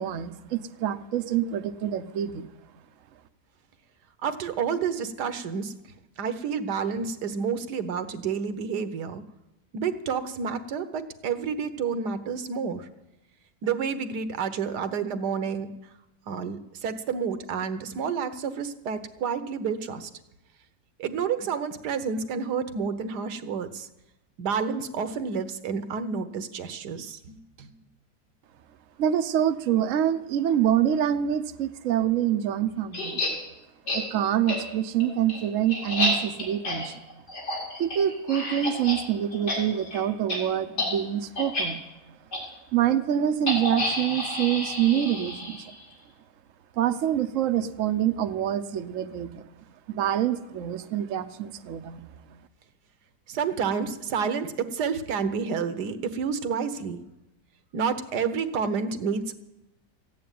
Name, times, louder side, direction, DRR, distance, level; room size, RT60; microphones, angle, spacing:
voice 1, 0.0-2.5 29.0-33.2 33.9-37.0 37.8-41.8 42.7-45.7 46.8-49.4 49.9-52.0, right 10 dB, 60° right, 8 dB, 1.0 m, -26 dB
voice 2, 4.2-5.7 6.2-9.2 9.7-12.9 13.6-15.7 16.3-20.1 21.0-23.9 24.4-27.7 53.3-57.0 57.7-59.4, right 6 dB, 80° right, 10 dB, 1.5 m, -29 dB
sound 1, 32.9-33.3 33.9-34.0 34.5-34.6 35.0-39.0 39.3-39.6 39.8-40.0 40.3-40.4 40.7-40.9 41.4-41.6 42.3-42.4 43.5-45.8, left 1 dB, 85° left, 4.6 m, -29 dB
15.0 x 9.4 x 9.1 m, 0.96 s
omnidirectional pair, 1.8 m